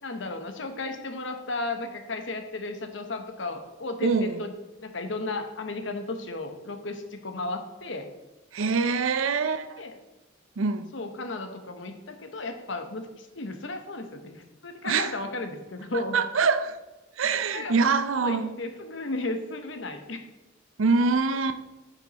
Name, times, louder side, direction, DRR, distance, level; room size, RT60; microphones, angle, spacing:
voice 1, 0.0-4.5 4.8-8.1 9.8-9.9 10.9-16.2 17.3-17.7 18.2-20.2, left 2 dB, 65° left, 0.9 m, -34 dB
voice 2, 4.0-4.4 8.5-9.8 10.6-10.9 14.8-15.1 16.1-16.8 17.2-18.5 20.8-21.6, right 4 dB, 85° right, 0.6 m, -24 dB
9.0 x 5.7 x 4.1 m
head